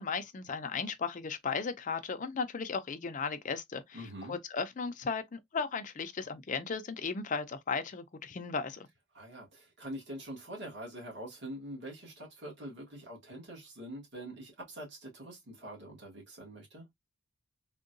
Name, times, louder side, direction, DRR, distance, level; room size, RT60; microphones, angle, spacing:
voice 1, 0.0-8.9, left 5 dB, 35° left, 0.4 m, -36 dB
voice 2, 3.9-4.4 9.1-16.8, right 1 dB, 55° right, 1.4 m, -44 dB
3.6 x 2.2 x 2.5 m
head